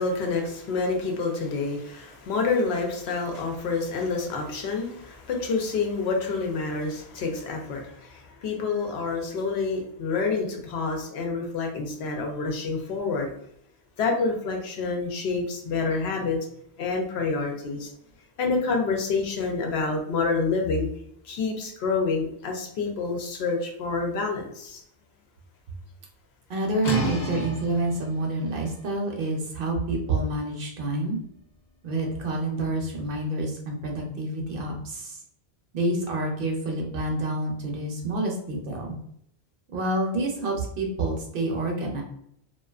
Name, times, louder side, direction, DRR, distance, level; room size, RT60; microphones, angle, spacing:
voice 1, 0.0-13.3 14.0-16.4 16.8-17.9 18.4-20.9 21.2-24.8, left 4 dB, 75° left, 2 dB, 0.8 m, -28 dB
voice 2, 26.5-31.2 31.8-35.2 35.7-39.0 39.7-42.0, right 2 dB, 65° right, 1 dB, 0.7 m, -28 dB
sound 1, 26.8-32.5, equal, 50° left, 0.6 m, -35 dB
2.4 x 2.2 x 2.3 m, 0.71 s
omnidirectional pair, 1.1 m